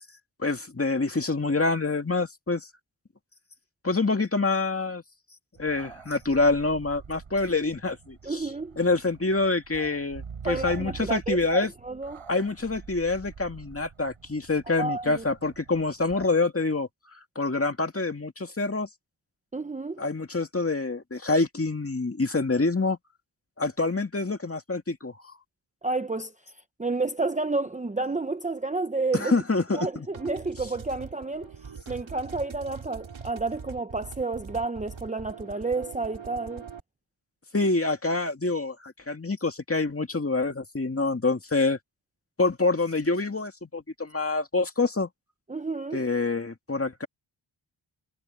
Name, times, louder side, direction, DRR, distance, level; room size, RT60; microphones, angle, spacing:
voice 1, 0.4-2.7 3.8-5.0 5.6-8.5 8.8-11.7 12.3-18.9 20.0-23.0 23.6-25.2 29.1-30.1 37.5-41.8 42.4-45.1 45.9-47.1, left 3 dB, 25° left, 2.2 m, -26 dB
sound 1, 5.6-16.3, right 6 dB, 80° right, 5.1 m, -46 dB
voice 2, 8.2-8.8 10.4-12.2 14.8-15.2 19.5-20.0 25.8-26.3 26.8-29.3 29.7-31.5 31.9-36.7 45.5-46.0, right 3 dB, 15° right, 0.8 m, -30 dB
sound 2, 30.1-36.8, right 6 dB, 65° right, 2.3 m, -42 dB
wide cardioid pair, 90°, 50 cm